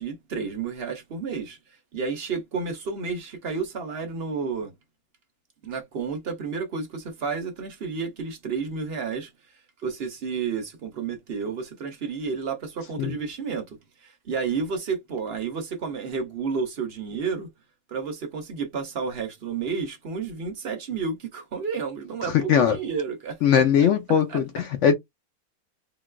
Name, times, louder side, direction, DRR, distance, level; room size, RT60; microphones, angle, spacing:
voice 1, 0.0-1.6 1.9-4.7 5.6-9.3 9.8-17.5 17.9-24.4, right 5 dB, 55° right, 0.8 m, -31 dB
voice 2, 22.3-22.8 23.4-25.0, left 8 dB, 65° left, 0.8 m, -20 dB
3.7 x 2.3 x 2.2 m
omnidirectional pair, 1.5 m